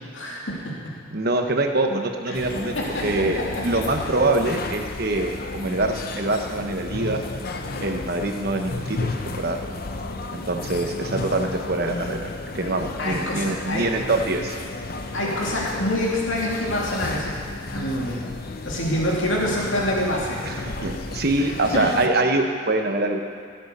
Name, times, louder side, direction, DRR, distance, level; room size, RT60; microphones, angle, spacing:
voice 1, 0.1-1.0 2.3-2.4 2.8-3.8 13.0-13.9 15.1-17.4 17.7-18.3 18.6-20.4 21.4-21.9, left 1 dB, 70° left, -3 dB, 2.6 m, -26 dB
voice 2, 1.1-2.8 3.0-7.2 7.8-9.6 10.3-14.5 20.4-23.2, right 2 dB, 50° right, 4 dB, 1.1 m, -24 dB
sound 1, 2.3-22.1, left 2 dB, 45° left, 0.7 m, -33 dB
16.0 x 7.6 x 6.7 m, 2.2 s
head